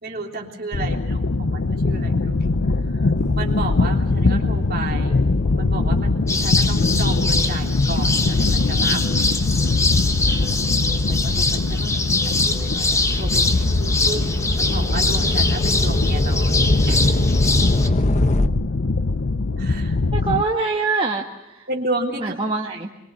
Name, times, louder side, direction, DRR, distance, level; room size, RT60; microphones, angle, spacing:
voice 1, 0.0-2.4 3.3-5.2 5.6-9.0 10.9-17.0 19.6-20.0 21.7-22.4, right 2 dB, 45° right, 1 dB, 3.3 m, -32 dB
sound 1, 0.7-20.4, left 3 dB, 60° left, 0.7 m, -22 dB
sound 2, 3.2-9.9 10.5-18.5, left 1 dB, 35° left, 1.0 m, -26 dB
sound 3, 6.3-17.9, left 3 dB, 15° left, 1.2 m, -24 dB
voice 2, 10.3-10.6 20.1-21.7 22.2-22.9, right 4 dB, 25° right, 0 dB, 1.5 m, -25 dB
26.0 x 22.5 x 6.8 m, 0.99 s
head